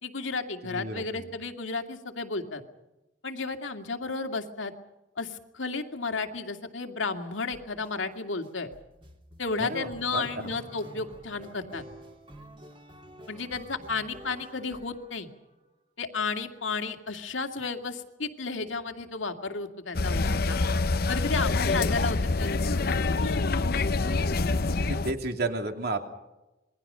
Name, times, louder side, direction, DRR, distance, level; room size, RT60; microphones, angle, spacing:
voice 1, 0.0-2.6 3.2-4.7 5.2-8.7 9.4-11.8 13.3-15.3 16.0-20.6 21.1-23.6, left 4 dB, 80° left, 5 dB, 2.4 m, -33 dB
voice 2, 0.6-1.3 9.6-10.2 24.8-26.1, right 2 dB, 55° right, 5 dB, 2.7 m, -32 dB
sound 1, 7.5-7.9 8.4-15.6, right 1 dB, 30° right, 3.1 m, -49 dB
sound 2, 19.9-25.1, left 3 dB, 50° left, 0.8 m, -26 dB
27.5 x 22.0 x 5.7 m, 1.0 s
head